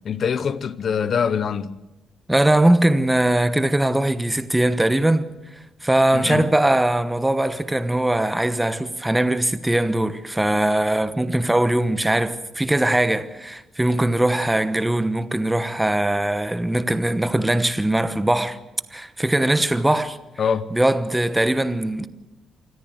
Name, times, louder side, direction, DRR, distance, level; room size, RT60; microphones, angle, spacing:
voice 1, 0.0-1.8 6.1-6.5 20.4-20.7, left 7 dB, 50° left, 0.9 m, -24 dB
voice 2, 2.3-5.3 5.8-18.6 18.9-20.2 20.7-22.1, right 1 dB, 10° right, 1.0 m, -20 dB
25.5 x 14.0 x 7.8 m
cardioid pair, 130°, 0 cm